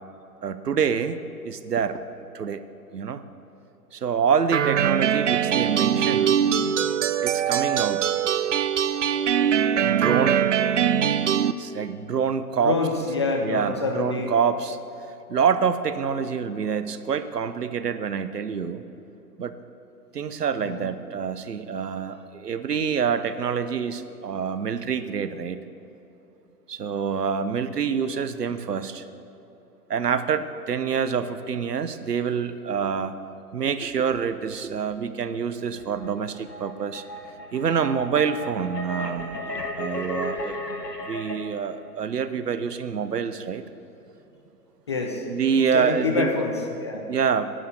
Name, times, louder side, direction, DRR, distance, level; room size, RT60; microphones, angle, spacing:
voice 1, 0.4-2.0 2.3-2.6 2.9-3.2 3.9-6.4 7.2-8.0 9.8-10.6 11.6-12.8 13.4-14.8 15.3-18.8 19.4-19.6 20.1-25.6 26.7-29.0 29.9-33.2 33.5-37.0 37.5-39.4 39.8-40.6 41.0-43.6 45.2-46.3 47.1-47.5, right 6 dB, 75° right, 12 dB, 0.8 m, -26 dB
sound 1, 4.5-11.5, right 9 dB, 50° right, 0.5 m, -22 dB
voice 2, 6.5-6.8 12.6-14.3 20.6-20.8 44.9-45.2 45.7-47.1, left 3 dB, 20° left, 2 dB, 0.5 m, -27 dB
sound 2, 35.8-41.4, equal, 90° left, 1.6 m, -34 dB
10.0 x 9.2 x 6.7 m, 2.9 s
figure-of-eight pair, 125°, 47 cm